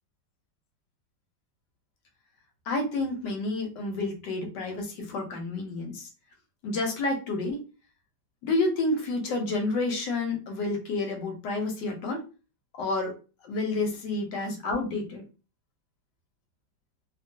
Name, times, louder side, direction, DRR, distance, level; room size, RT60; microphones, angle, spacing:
voice 1, 2.7-6.1 6.6-7.6 8.4-12.2 12.8-13.1 13.4-15.2, left 2 dB, 80° left, 3 dB, 1.4 m, -29 dB
2.9 x 2.4 x 2.6 m, 0.34 s
omnidirectional pair, 1.9 m